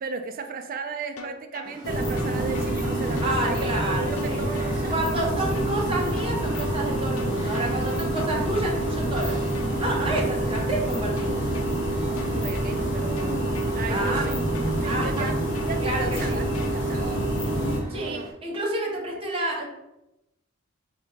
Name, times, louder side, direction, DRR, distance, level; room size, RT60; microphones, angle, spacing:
voice 1, 0.0-5.7 12.3-14.4 14.6-17.2 17.9-18.6, right 5 dB, 45° right, 0.3 m, -36 dB
sound 1, 1.2-1.7 2.2-2.7 3.2-3.7 4.2-4.7 5.2-5.7 6.2-6.7 7.2-7.7 8.2-8.7 9.2-9.7 10.2-10.7 11.2-11.7 12.2-12.7 13.2-13.7 14.2-14.7 15.2-15.7 16.2-16.7, left 3 dB, 90° left, 0.5 m, -41 dB
sound 2, 1.6-18.3, right 1 dB, 20° left, 1.1 m, -43 dB
sound 3, 1.8-17.8, right 1 dB, 60° left, 1.1 m, -27 dB
voice 2, 3.2-4.4 4.9-9.4 9.8-11.4 13.9-14.3 14.8-15.3 15.8-16.4 17.9-19.7, right 1 dB, 25° right, 0.9 m, -29 dB
4.3 x 2.9 x 3.7 m
head